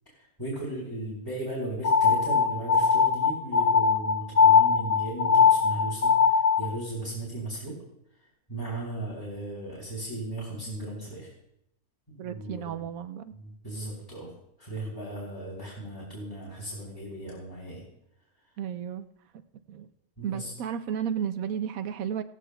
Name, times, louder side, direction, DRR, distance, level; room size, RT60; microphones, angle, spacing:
voice 1, 0.1-7.8 8.2-11.3 12.1-12.9 13.3-14.3 14.6-17.8 20.2-20.5, right 2 dB, 15° left, -5 dB, 3.3 m, -36 dB
sound 1, 1.8-6.7, left 6 dB, 55° left, 0.7 m, -21 dB
voice 2, 12.2-13.3 18.6-19.1 19.7-19.9 20.2-22.2, right 8 dB, 70° right, 11 dB, 1.0 m, -33 dB
17.0 x 14.5 x 2.3 m, 0.80 s
omnidirectional pair, 1.7 m